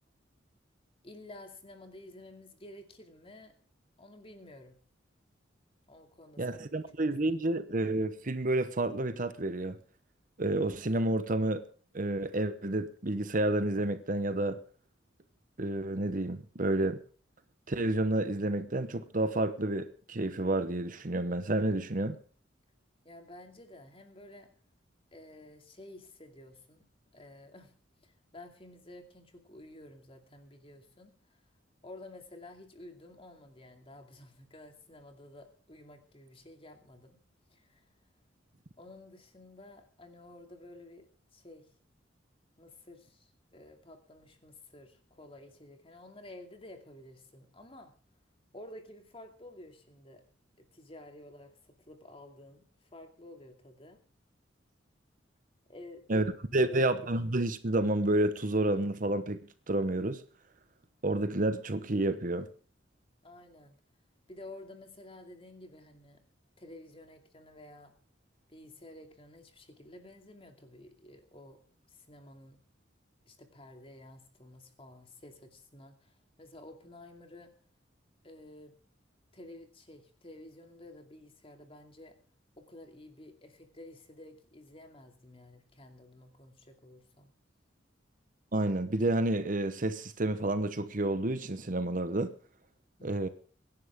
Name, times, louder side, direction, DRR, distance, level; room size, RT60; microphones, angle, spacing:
voice 1, 1.0-3.5 4.0-4.8 5.9-7.4 23.0-24.5 25.1-26.9 27.1-27.7 28.0-31.4 31.8-37.2 37.5-37.9 38.8-41.7 42.6-47.9 48.5-50.2 50.6-54.0 55.7-56.8 63.2-63.8 64.3-66.2 66.6-67.9 68.5-71.6 71.9-72.6 73.3-77.5 78.2-78.8 79.3-82.2 82.6-87.3 93.0-93.3, left 1 dB, 30° left, 2.5 m, -52 dB
voice 2, 6.4-9.8 10.4-11.6 11.9-14.6 15.6-17.0 17.7-22.2 56.1-56.2 56.5-59.4 59.7-60.2 61.0-62.5 88.5-92.3 93.0-93.3, right 2 dB, 45° right, 0.9 m, -30 dB
24.0 x 10.5 x 3.6 m
head